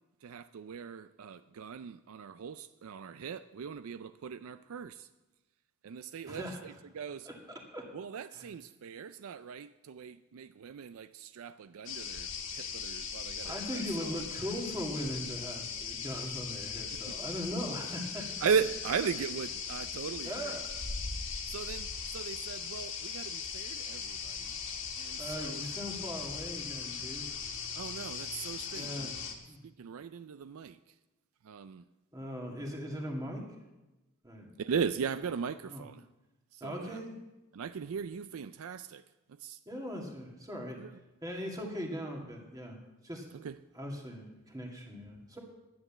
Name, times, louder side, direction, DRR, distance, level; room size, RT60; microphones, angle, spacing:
voice 1, 0.2-5.1 5.8-7.3 7.9-14.2 17.1-17.2 18.4-20.6 21.5-24.6 25.0-25.6 27.8-29.1 29.6-30.8 31.4-31.8 34.6-36.0 36.5-37.0 37.5-39.0 39.4-39.6 40.8-40.9 43.4-43.5, right 6 dB, 75° right, 12 dB, 0.4 m, -38 dB
voice 2, 6.3-6.8 7.3-7.8 8.3-8.5 13.4-18.6 20.2-20.7 25.2-27.3 28.7-29.6 32.1-33.4 34.2-34.5 35.7-35.9 36.6-37.1 39.7-40.8 41.2-42.8 43.0-43.3 43.7-45.4, equal, 15° right, 0 dB, 2.2 m, -40 dB
sound 1, 11.9-29.3, left 6 dB, 60° left, 1.7 m, -39 dB
11.0 x 8.8 x 7.2 m, 1.1 s
head